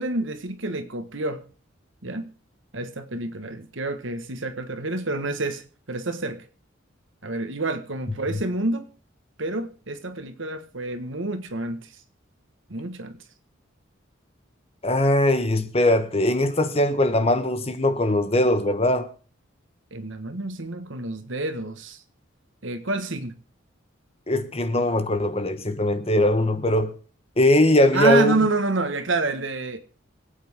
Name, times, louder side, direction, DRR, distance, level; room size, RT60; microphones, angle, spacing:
voice 1, 0.0-1.4 2.0-2.3 2.7-6.5 7.2-8.9 9.4-11.9 12.7-13.2 19.9-22.0 22.6-23.3 27.9-29.8, right 2 dB, 70° right, 1.6 m, -28 dB
voice 2, 14.8-19.1 24.3-26.9 27.4-28.3, left 1 dB, 30° left, 1.2 m, -21 dB
24.0 x 8.8 x 3.6 m
head